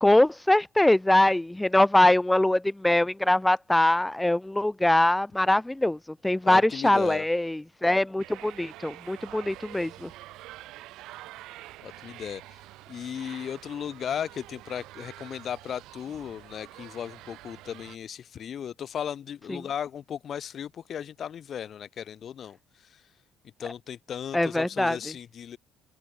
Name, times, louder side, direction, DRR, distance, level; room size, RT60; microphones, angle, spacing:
voice 1, 0.0-6.0 6.2-10.1 24.3-25.0, left 1 dB, 5° left, 0.5 m, -22 dB
voice 2, 6.4-7.3 11.8-23.2 23.6-25.6, left 8 dB, 35° left, 2.0 m, -36 dB
sound 1, 8.2-18.0, right 17 dB, 70° right, 6.2 m, -47 dB
open air
cardioid pair, 170°, 0 cm